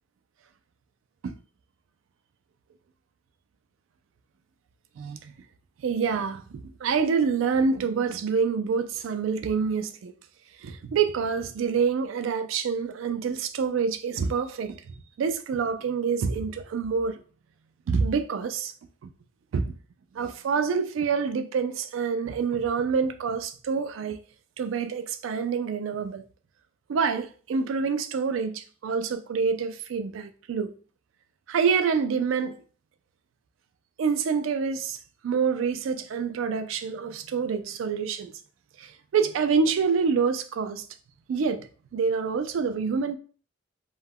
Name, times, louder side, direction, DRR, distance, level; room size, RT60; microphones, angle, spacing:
voice 1, 5.0-5.3 5.8-10.1 10.6-17.2 17.9-18.7 19.0-19.1 19.5-19.8 20.1-24.2 24.6-26.2 26.9-30.7 31.5-32.6 34.0-38.3 38.8-40.8 41.3-41.7 41.9-43.2, right 5 dB, 90° right, 0.3 m, -27 dB
2.3 x 2.1 x 3.4 m
head